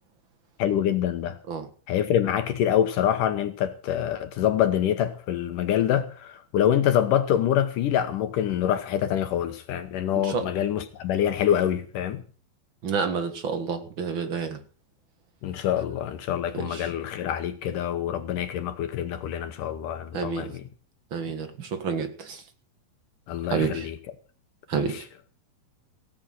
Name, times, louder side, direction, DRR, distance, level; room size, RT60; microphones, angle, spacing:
voice 1, 0.6-1.4 1.9-12.2 15.4-20.6 23.3-24.0 24.8-25.0, left 10 dB, 70° left, 2.4 m, -25 dB
voice 2, 10.1-10.5 12.8-14.6 16.5-16.9 20.1-20.5 21.1-22.4 23.5-23.9 24.7-25.0, right 6 dB, 50° right, 1.6 m, -29 dB
17.5 x 8.6 x 7.7 m
omnidirectional pair, 4.4 m